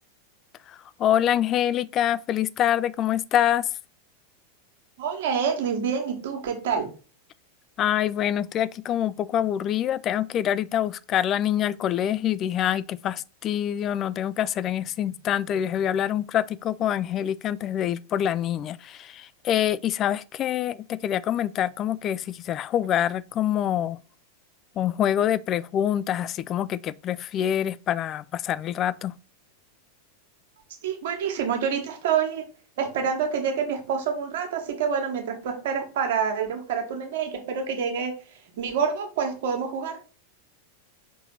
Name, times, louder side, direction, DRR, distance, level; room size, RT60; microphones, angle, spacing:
voice 1, 1.0-3.7 7.8-24.0 24.8-29.2, left 10 dB, 30° left, 0.3 m, -25 dB
voice 2, 5.0-6.9 30.8-32.4 32.8-38.1 38.6-40.0, right 6 dB, 55° right, 1.6 m, -27 dB
5.8 x 4.1 x 4.0 m
figure-of-eight pair, 90°, 0 cm